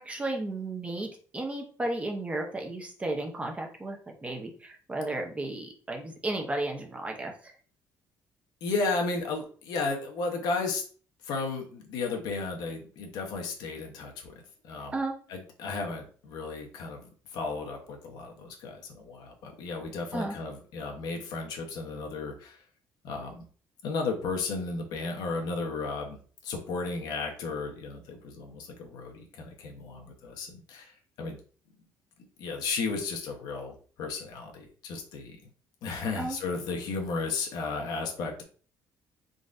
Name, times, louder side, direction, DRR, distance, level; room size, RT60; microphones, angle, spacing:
voice 1, 0.0-7.3 14.9-15.2 20.1-20.3 36.2-36.4, right 2 dB, 20° right, 2 dB, 0.9 m, -33 dB
voice 2, 8.6-10.8 11.2-14.3 14.6-14.9 15.3-22.6 23.0-23.4 23.8-26.2 26.4-30.9 31.2-31.4 32.4-35.4 35.8-38.4, left 4 dB, 75° left, 2 dB, 1.1 m, -34 dB
3.9 x 3.6 x 2.6 m, 0.42 s
cardioid pair, 115°, 7 cm